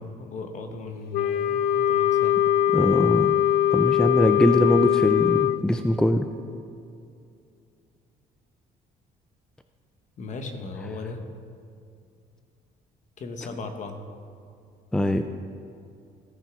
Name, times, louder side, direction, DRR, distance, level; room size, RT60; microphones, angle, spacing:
voice 1, 0.0-2.4 10.2-11.2 13.2-14.0, left 3 dB, 45° left, 6 dB, 1.1 m, -37 dB
Wind instrument woodwind instrument, 1.1-5.6, left 11 dB, 70° left, 0.4 m, -21 dB
voice 2, 2.7-3.3 3.7-6.3 14.9-15.2, left 1 dB, 5° left, 7 dB, 0.4 m, -22 dB
16.5 x 5.8 x 3.6 m, 2.4 s
cardioid pair, 110°, 17 cm